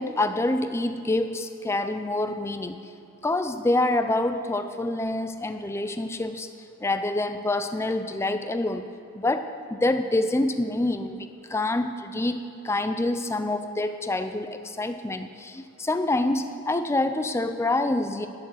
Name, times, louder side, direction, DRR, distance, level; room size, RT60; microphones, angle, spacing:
voice 1, 0.0-2.8 3.2-6.5 6.8-8.8 9.1-18.3, left 2 dB, 10° left, 9 dB, 0.3 m, -26 dB
9.6 x 7.9 x 6.3 m, 2.4 s
head